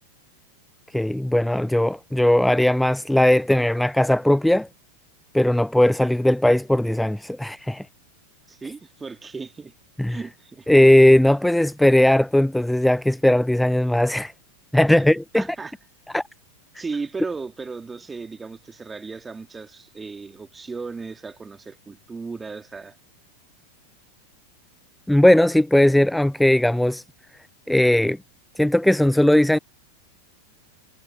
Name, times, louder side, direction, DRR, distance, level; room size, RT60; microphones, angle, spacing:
voice 1, 0.9-4.7 5.3-7.9 10.0-10.2 10.7-14.3 14.7-15.4 16.1-16.2 25.1-27.0 27.7-28.2 28.6-29.6, left 1 dB, 5° left, 0.5 m, -18 dB
voice 2, 8.5-9.7 10.1-10.7 14.9-15.0 15.3-15.7 16.8-23.0, right 4 dB, 15° right, 2.4 m, -35 dB
figure-of-eight pair, 90°, 0 cm